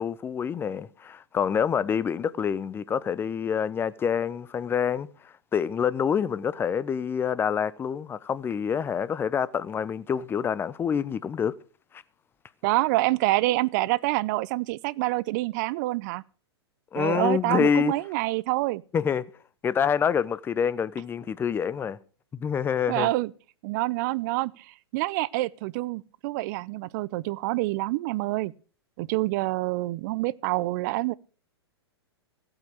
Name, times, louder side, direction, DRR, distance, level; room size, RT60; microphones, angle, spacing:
voice 1, 0.0-5.1 5.5-11.5 11.9-12.0 16.9-17.9 18.9-19.2 19.6-22.0 22.3-23.1, left 7 dB, 15° left, 0.7 m, -27 dB
voice 2, 12.6-16.2 17.0-18.8 22.9-23.3 23.6-28.5 29.0-31.1, right 19 dB, 45° right, 0.6 m, -27 dB
15.5 x 8.8 x 6.3 m
hypercardioid pair, 110°, 14 cm